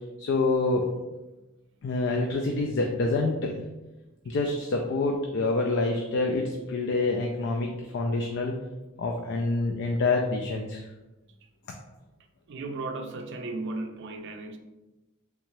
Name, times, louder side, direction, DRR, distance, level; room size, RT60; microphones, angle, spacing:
voice 1, 0.2-0.8 1.8-3.6 4.3-8.5 9.0-10.9, left 3 dB, 55° left, 2 dB, 0.3 m, -27 dB
voice 2, 12.5-14.6, right 2 dB, 55° right, 6 dB, 0.4 m, -35 dB
3.4 x 2.8 x 3.1 m, 1.1 s
head